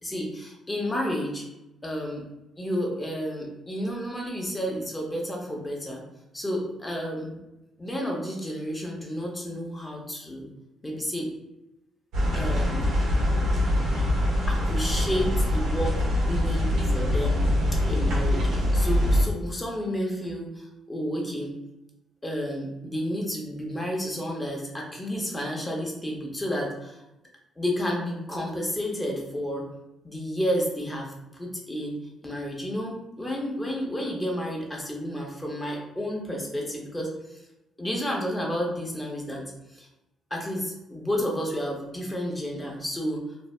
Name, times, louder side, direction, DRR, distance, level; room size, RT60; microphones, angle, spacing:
voice 1, 0.0-1.5 1.8-2.2 2.6-6.0 6.3-7.3 7.8-10.5 10.8-11.3 12.3-12.8 14.5-17.4 17.9-21.5 22.2-27.0 27.6-29.7 30.0-32.0 32.2-37.4 37.8-39.9 40.3-43.2, equal, 15° left, -1 dB, 0.8 m, -31 dB
sound 1, 12.1-19.2, left 1 dB, 90° right, 1.0 m, -24 dB
2.6 x 2.0 x 3.1 m, 0.91 s
cardioid pair, 90°, 0 cm